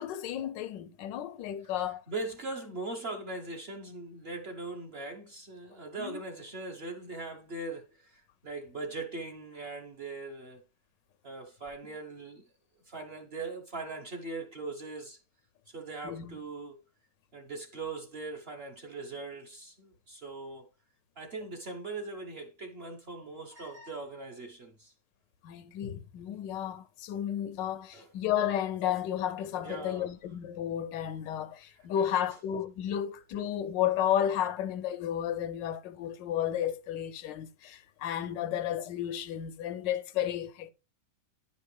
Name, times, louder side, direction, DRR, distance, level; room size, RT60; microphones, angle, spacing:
voice 1, 0.0-2.0 6.0-6.2 16.0-16.4 25.4-40.7, left 10 dB, 85° left, 1.3 m, -32 dB
voice 2, 2.1-10.6 11.2-12.4 12.9-15.2 15.7-16.8 17.3-20.7 21.2-24.9 27.9-28.1 29.6-30.1 32.0-32.1, right 3 dB, 45° right, 0.9 m, -40 dB
10.0 x 5.4 x 3.2 m
omnidirectional pair, 1.9 m